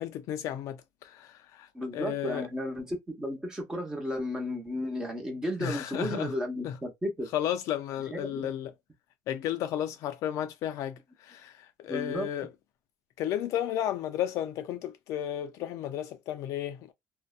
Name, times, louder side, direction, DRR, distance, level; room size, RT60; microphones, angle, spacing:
voice 1, 0.0-2.5 5.6-6.3 6.6-6.8 7.3-8.7 9.3-12.5 13.2-16.9, left 11 dB, 60° left, 0.5 m, -33 dB
voice 2, 1.7-7.3 8.1-8.5 11.9-12.3, left 1 dB, 10° right, 0.9 m, -33 dB
2.6 x 2.1 x 2.4 m
cardioid pair, 150°, 6 cm